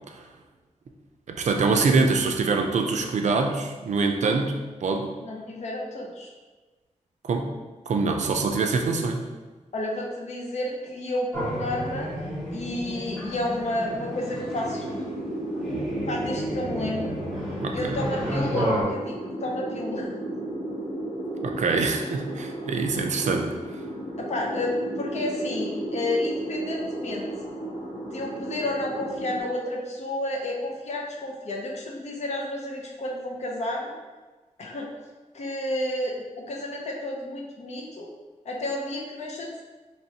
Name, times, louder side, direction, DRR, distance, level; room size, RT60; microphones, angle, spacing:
voice 1, 1.3-5.1 7.2-7.5 7.9-9.3 17.6-18.0 21.4-23.5, right 4 dB, 65° right, 3 dB, 0.4 m, -24 dB
voice 2, 5.2-6.3 9.7-12.1 12.5-14.9 15.2-15.4 16.1-17.2 17.7-20.1 24.2-27.3 28.0-33.9 34.6-34.9 35.3-38.1 38.4-39.6, left 1 dB, 60° left, -1 dB, 0.7 m, -31 dB
sound 1, 11.3-18.8, equal, ahead, 1.1 m, -32 dB
sound 2, 13.6-29.4, right 1 dB, 90° left, 1.1 m, -34 dB
4.5 x 2.9 x 2.8 m, 1.3 s
wide cardioid pair, 170°, 13 cm